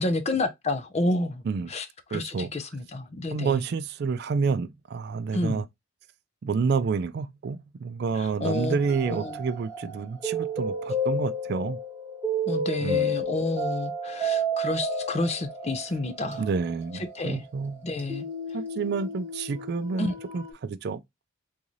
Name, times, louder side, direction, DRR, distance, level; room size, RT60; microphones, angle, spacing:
voice 1, 0.0-1.4 1.7-3.6 5.3-5.7 8.1-8.7 9.1-9.4 12.5-16.4 17.1-17.4 17.8-18.3 20.0-20.1, left 2 dB, 30° left, 0.5 m, -30 dB
voice 2, 2.1-2.5 3.3-5.7 6.4-11.8 12.8-13.1 16.4-17.8 18.5-21.0, right 5 dB, 50° right, 0.3 m, -29 dB
sound 1, 8.5-20.5, right 1 dB, 10° right, 1.1 m, -32 dB
3.7 x 2.6 x 3.0 m
head